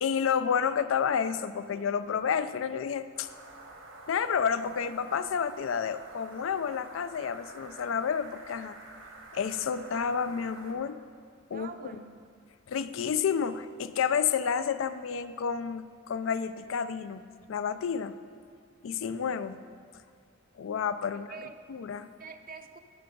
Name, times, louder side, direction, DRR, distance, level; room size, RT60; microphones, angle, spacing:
voice 1, 0.0-3.3 4.1-8.8 9.3-11.0 11.5-11.7 12.7-17.2 17.5-18.2 18.8-19.6 20.6-21.3 21.7-22.1, left 7 dB, 70° left, 13 dB, 0.4 m, -30 dB
sound 1, 3.1-10.7, right 2 dB, 80° right, 1.4 m, -49 dB
voice 2, 11.5-12.2 21.1-21.6 22.2-22.8, right 5 dB, 45° right, 8 dB, 0.6 m, -45 dB
12.5 x 5.7 x 5.2 m, 2.2 s
head